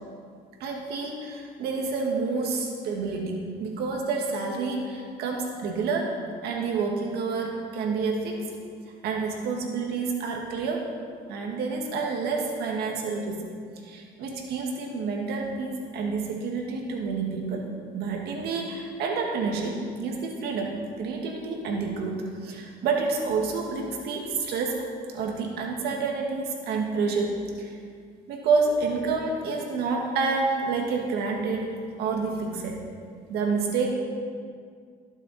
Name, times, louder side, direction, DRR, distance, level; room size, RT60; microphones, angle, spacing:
voice 1, 0.6-6.2 6.4-8.4 9.0-10.8 11.3-13.4 13.8-17.7 17.9-24.8 25.1-27.7 28.3-31.7 32.0-32.8 33.3-33.9, right 4 dB, 80° right, 1 dB, 2.0 m, -28 dB
18.0 x 7.2 x 4.3 m, 2.1 s
cardioid pair, 95°, 17 cm